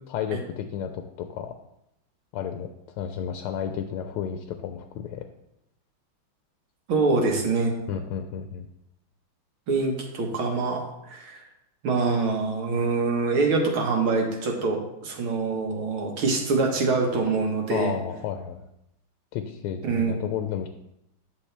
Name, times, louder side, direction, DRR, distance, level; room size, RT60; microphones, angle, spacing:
voice 1, 0.1-1.5 2.3-5.2 7.9-8.7 17.7-18.7 19.3-20.7, left 8 dB, 85° left, 6 dB, 1.5 m, -32 dB
voice 2, 6.9-7.7 9.7-11.4 11.8-18.0 19.8-20.2, right 3 dB, 70° right, 1 dB, 2.1 m, -25 dB
9.8 x 5.8 x 3.3 m, 0.83 s
omnidirectional pair, 2.4 m